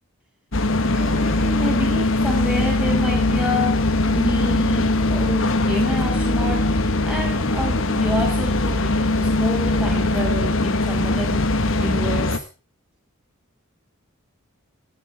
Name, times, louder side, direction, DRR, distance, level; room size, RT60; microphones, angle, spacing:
sound 1, 0.5-12.4, left 2 dB, 65° left, 1.3 m, -21 dB
voice 1, 0.9-3.8 4.1-12.4, left 1 dB, 5° right, 0 dB, 6.1 m, -29 dB
15.5 x 12.5 x 3.5 m, 0.34 s
head